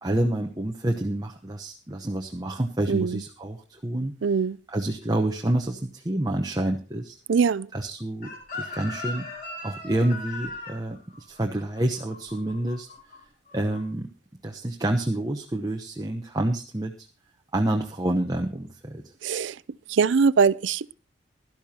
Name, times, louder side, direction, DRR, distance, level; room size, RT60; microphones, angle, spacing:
voice 1, 0.0-4.4 4.7-7.1 7.7-9.3 9.6-12.9 13.5-14.1 14.4-17.1 17.5-19.1, right 1 dB, 20° right, 0.9 m, -28 dB
voice 2, 2.9-3.2 4.2-4.6 7.3-7.7 19.2-19.5 19.9-20.9, right 5 dB, 75° right, 0.5 m, -22 dB
Chicken rooster, 8.2-13.2 13.5-13.8, left 2 dB, 50° left, 6.6 m, -38 dB
17.0 x 12.0 x 2.9 m
head